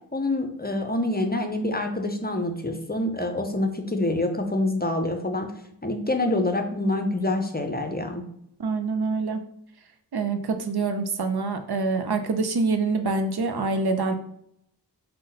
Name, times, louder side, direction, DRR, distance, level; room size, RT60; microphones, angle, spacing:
voice 1, 0.1-5.5 5.8-8.2, left 2 dB, 25° left, 4 dB, 0.6 m, -26 dB
voice 2, 8.6-9.4 10.1-14.1, right 3 dB, 65° right, 6 dB, 0.6 m, -25 dB
5.1 x 2.2 x 3.9 m, 0.75 s
wide cardioid pair, 55°, 42 cm